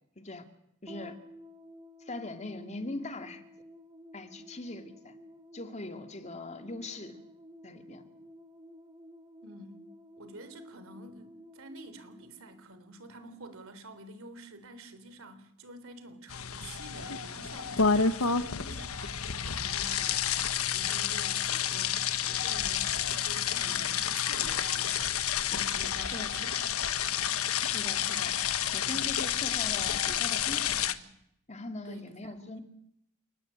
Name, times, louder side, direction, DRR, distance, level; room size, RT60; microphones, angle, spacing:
voice 1, 0.8-1.2 2.0-3.4 4.1-5.1 5.5-7.2 7.6-8.0 26.1-26.3 27.6-28.3 28.7-31.0 31.5-32.6, left 2 dB, 30° left, 2.5 m, -41 dB
sound 1, 0.9-13.4, equal, 20° right, 3.8 m, -52 dB
voice 2, 9.4-9.9 10.2-25.2 25.5-26.9 31.8-32.6, right 1 dB, 70° right, 3.7 m, -48 dB
sound 2, 16.3-30.9, left 8 dB, 80° left, 1.4 m, -30 dB
29.0 x 18.5 x 9.0 m
head